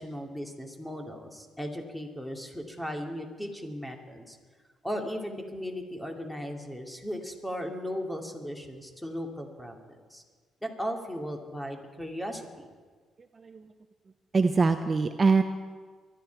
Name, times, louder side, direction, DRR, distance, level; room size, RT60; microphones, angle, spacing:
voice 1, 0.0-4.4 4.8-10.2 10.6-12.7, equal, 5° left, 3 dB, 2.4 m, -37 dB
voice 2, 13.3-13.7 14.3-15.4, right 4 dB, 35° right, 8 dB, 0.7 m, -23 dB
23.0 x 11.5 x 4.6 m, 1.5 s
cardioid pair, 90°, 0 cm